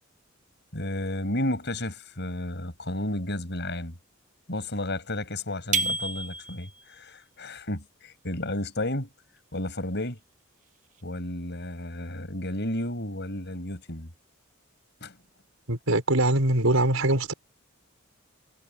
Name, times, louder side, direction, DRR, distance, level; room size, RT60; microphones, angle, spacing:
voice 1, 0.7-4.0 4.5-9.1 9.5-10.2 11.0-14.1 15.0-15.2, left 1 dB, 55° left, 7.0 m, -32 dB
sound 1, 5.7-6.8, right 4 dB, 35° right, 1.7 m, -29 dB
voice 2, 15.7-17.3, right 1 dB, 85° right, 5.5 m, -23 dB
head